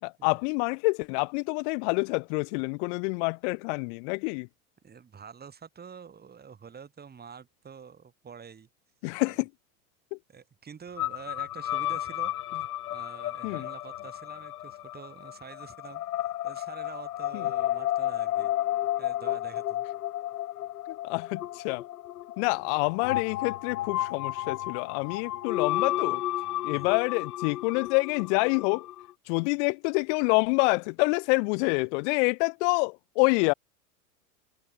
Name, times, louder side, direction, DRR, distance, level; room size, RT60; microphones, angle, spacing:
voice 1, 0.0-4.5 9.0-9.5 10.1-10.2 13.4-13.7 17.3-17.4 20.9-21.8 22.4-26.2 26.6-28.9 29.3-33.5, left 33 dB, 50° left, 0.7 m, -27 dB
voice 2, 4.8-8.7 9.3-9.4 10.3-12.3 12.9-16.0 16.4-18.5 19.0-19.9 26.7-26.9, right 6 dB, 20° right, 5.2 m, -47 dB
sound 1, 11.0-29.1, left 14 dB, 80° left, 1.7 m, -32 dB
hypercardioid pair, 105°, 44 cm